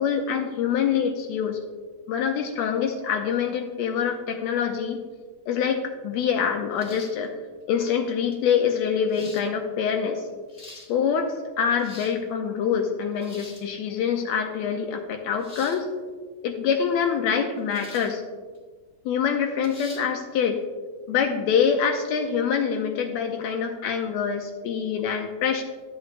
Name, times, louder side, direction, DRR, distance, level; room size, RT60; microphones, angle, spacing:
voice 1, 0.0-1.6 2.1-5.0 5.5-7.4 7.7-10.2 10.9-15.9 16.4-18.2 19.1-20.6 21.1-25.6, left 7 dB, 80° left, 4 dB, 1.8 m, -25 dB
sound 1, 6.8-7.3 8.3-8.4 9.1-9.5 10.3-10.9 11.6-12.2 13.2-13.7 15.4-15.8 17.7-18.1 18.5-18.6 19.6-20.1, left 2 dB, 40° left, 0.9 m, -44 dB
13.5 x 7.6 x 2.4 m, 1.5 s
omnidirectional pair, 3.3 m